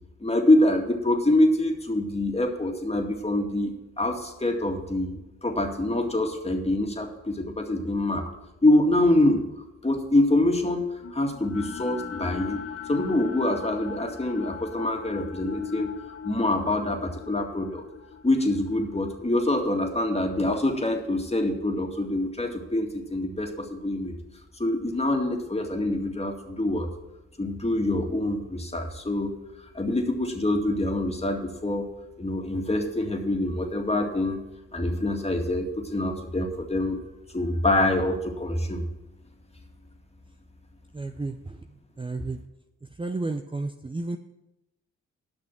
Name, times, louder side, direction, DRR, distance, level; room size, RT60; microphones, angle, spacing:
voice 1, 0.2-8.3 8.6-10.8 11.1-12.6 12.9-15.9 16.2-17.8 18.2-24.1 24.6-26.9 27.4-29.3 29.7-31.9 32.2-34.4 34.7-37.0 37.3-38.9, left 1 dB, 20° left, 3 dB, 2.1 m, -25 dB
sound 1, 11.0-21.2, left 7 dB, 45° left, 0.8 m, -39 dB
voice 2, 40.9-41.4 42.0-42.4 43.0-44.2, right 3 dB, 15° right, 7 dB, 0.6 m, -31 dB
8.9 x 6.1 x 7.4 m, 0.94 s
hypercardioid pair, 40°, 31 cm